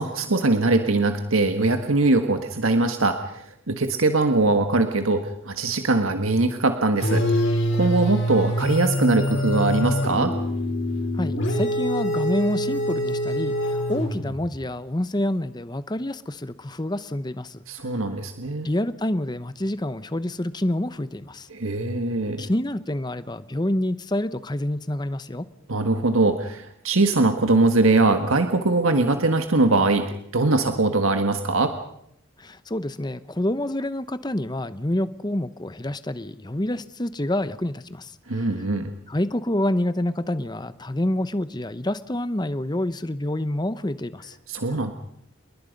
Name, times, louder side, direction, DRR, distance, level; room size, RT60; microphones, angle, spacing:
voice 1, 0.0-7.2 7.7-10.3 17.7-18.7 21.5-22.5 25.7-30.0 30.3-31.7 38.3-38.9 44.5-44.9, right 2 dB, 80° right, 6 dB, 1.6 m, -21 dB
sound 1, 7.0-14.5, equal, 60° left, 5.7 m, -25 dB
voice 2, 11.1-17.6 18.6-21.5 22.4-25.5 32.4-38.1 39.1-44.3, left 1 dB, 20° left, 14 dB, 0.9 m, -27 dB
28.5 x 21.5 x 5.3 m, 0.74 s
head